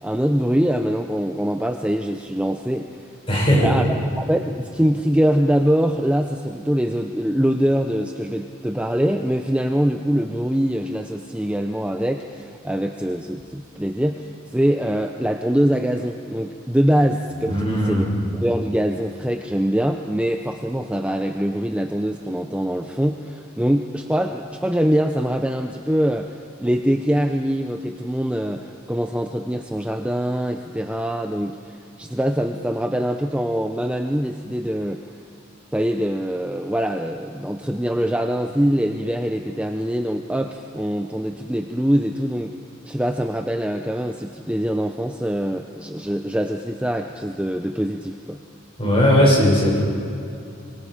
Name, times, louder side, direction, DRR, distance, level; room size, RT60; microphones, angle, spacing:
voice 1, 0.0-2.9 3.6-3.8 4.2-18.1 18.3-26.3 26.6-35.1 35.7-42.5 42.8-48.4, equal, 5° right, 4 dB, 0.6 m, -23 dB
voice 2, 3.3-3.8 17.4-18.1 48.8-49.8, equal, 25° left, -3 dB, 6.9 m, -18 dB
26.0 x 22.5 x 5.1 m, 2.6 s
head